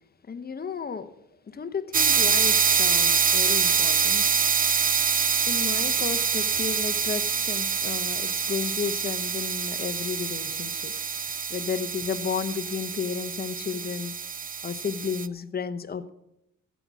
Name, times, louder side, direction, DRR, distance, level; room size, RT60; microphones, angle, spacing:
voice 1, 0.3-1.1 1.5-4.3 5.5-10.9 11.2-14.1 14.6-16.1, left 6 dB, 30° left, 10 dB, 0.9 m, -33 dB
sound 1, 1.9-15.3, right 6 dB, 30° right, 0.6 m, -25 dB
14.0 x 8.3 x 6.1 m, 0.83 s
cardioid pair, 90°, 30 cm